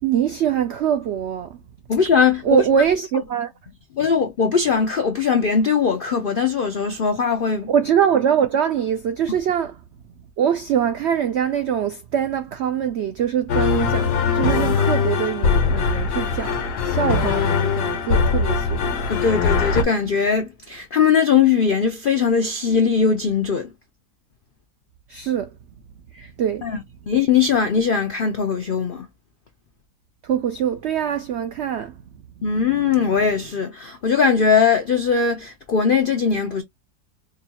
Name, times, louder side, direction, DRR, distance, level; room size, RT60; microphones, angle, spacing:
voice 1, 0.0-1.6 2.5-3.5 7.7-9.7 10.4-19.0 25.1-25.5 26.4-26.7 30.2-32.0, right 8 dB, 80° right, 0.6 m, -23 dB
voice 2, 1.9-2.6 3.9-7.7 19.1-23.7 26.1-26.3 26.6-29.1 32.4-36.6, left 6 dB, 70° left, 0.5 m, -20 dB
sound 1, 13.5-19.8, left 5 dB, 90° left, 1.5 m, -21 dB
4.9 x 2.2 x 2.9 m
omnidirectional pair, 1.7 m